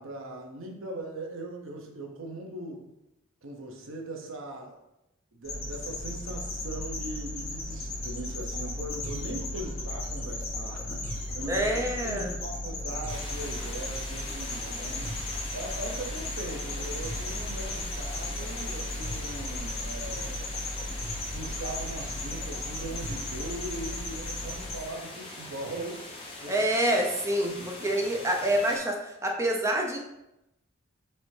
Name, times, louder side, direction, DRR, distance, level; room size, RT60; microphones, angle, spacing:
voice 1, 0.0-2.9 3.4-4.8 5.3-15.2 15.5-20.6 21.3-26.1 26.4-26.6 27.4-27.9, right 1 dB, 70° right, 2 dB, 0.7 m, -40 dB
sound 1, 5.4-24.8, left 2 dB, 70° left, 1.2 m, -35 dB
sound 2, 7.9-23.6, equal, 35° right, 1.0 m, -44 dB
voice 2, 11.5-12.3 26.5-30.0, right 1 dB, 15° right, 1 dB, 0.5 m, -27 dB
sound 3, 13.1-28.8, left 2 dB, 25° left, 0.9 m, -42 dB
4.2 x 3.3 x 3.2 m, 0.88 s
head